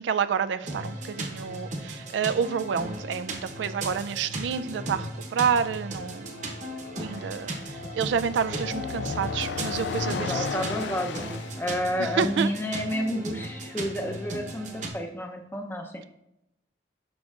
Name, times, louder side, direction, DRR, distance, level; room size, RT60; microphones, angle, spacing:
voice 1, 0.0-6.4 7.0-10.6 12.0-12.5, right 6 dB, 90° right, 0.3 m, -29 dB
sound 1, 0.6-14.9, right 1 dB, 40° right, 0.9 m, -36 dB
sound 2, 6.1-11.6, left 6 dB, 80° left, 0.3 m, -35 dB
voice 2, 10.1-16.1, equal, 10° left, 0.6 m, -31 dB
10.5 x 6.3 x 2.4 m
head